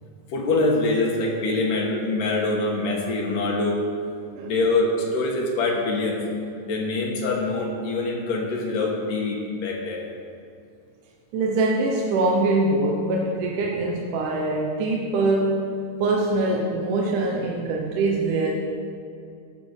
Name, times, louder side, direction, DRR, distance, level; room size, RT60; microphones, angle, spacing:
voice 1, 0.3-3.9 4.4-6.2 6.7-10.1, left 2 dB, 75° left, 0 dB, 2.7 m, -24 dB
voice 2, 11.3-15.7 16.0-18.6, right 2 dB, 75° right, -1 dB, 2.4 m, -23 dB
16.0 x 5.8 x 6.5 m, 2.4 s
omnidirectional pair, 3.9 m